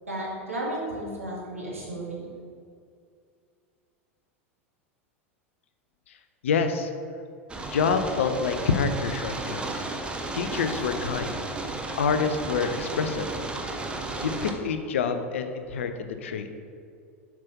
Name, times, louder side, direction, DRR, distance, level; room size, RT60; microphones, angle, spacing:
voice 1, 0.1-2.3, right 1 dB, 85° right, -4 dB, 2.2 m, -33 dB
voice 2, 6.4-6.9 7.7-9.8 10.3-11.4 12.0-13.3 14.2-16.5, left 5 dB, 65° left, 8 dB, 0.7 m, -27 dB
sound 1, 7.5-14.5, right 2 dB, 15° right, 1.0 m, -33 dB
7.7 x 6.0 x 5.3 m, 2.3 s
figure-of-eight pair, 85°, 7 cm